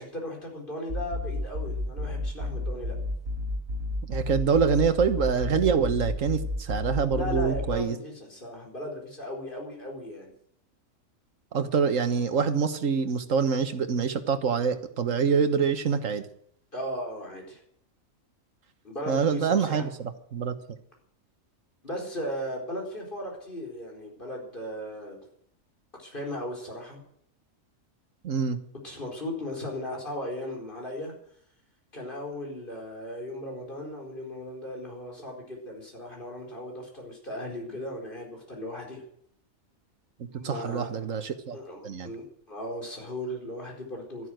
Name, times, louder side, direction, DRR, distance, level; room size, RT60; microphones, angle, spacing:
voice 1, 0.0-3.0 6.7-6.8 7.1-10.3 16.7-17.6 18.8-19.8 21.8-25.2 26.0-27.0 28.8-31.1 31.9-39.0 40.3-40.9 41.5-44.3, left 1 dB, 40° left, 0 dB, 4.7 m, -37 dB
sound 1, 0.9-7.7, left 1 dB, 55° right, 4.3 m, -32 dB
voice 2, 4.1-8.0 11.5-16.3 19.1-20.6 28.2-28.6 40.4-41.6 41.8-42.1, right 6 dB, 75° right, 9 dB, 1.7 m, -25 dB
13.0 x 11.0 x 9.2 m, 0.67 s
omnidirectional pair, 1.4 m